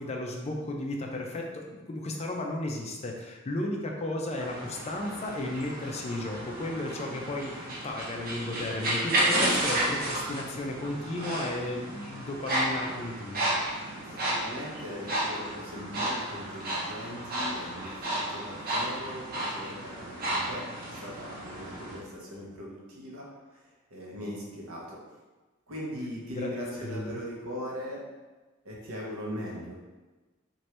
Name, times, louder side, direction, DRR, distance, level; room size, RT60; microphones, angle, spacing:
voice 1, 0.0-13.5 26.3-26.5 26.8-27.2, left 2 dB, 30° left, 1 dB, 0.4 m, -34 dB
sound 1, 4.3-22.0, right 1 dB, 45° right, 0.7 m, -32 dB
voice 2, 14.0-23.6 23.9-25.0 25.7-28.0 28.6-29.8, equal, 85° right, -3 dB, 0.8 m, -40 dB
2.9 x 2.5 x 3.2 m, 1.2 s
head